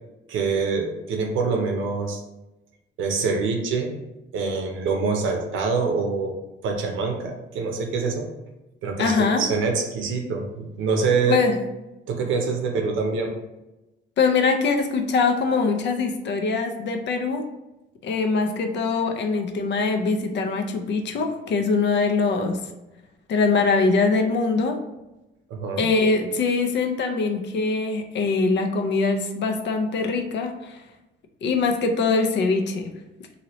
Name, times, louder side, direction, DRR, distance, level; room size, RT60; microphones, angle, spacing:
voice 1, 0.3-2.2 3.0-3.9 4.3-6.4 6.6-8.3 8.8-11.4 12.1-13.4 25.5-25.9, right 4 dB, 80° right, 3 dB, 0.7 m, -25 dB
voice 2, 9.0-9.4 11.3-11.5 14.2-17.4 18.0-22.6 23.3-24.8 25.8-30.8 31.4-32.9, left 4 dB, 65° left, 5 dB, 0.5 m, -22 dB
2.8 x 2.7 x 3.0 m, 0.97 s
cardioid pair, 90°, 20 cm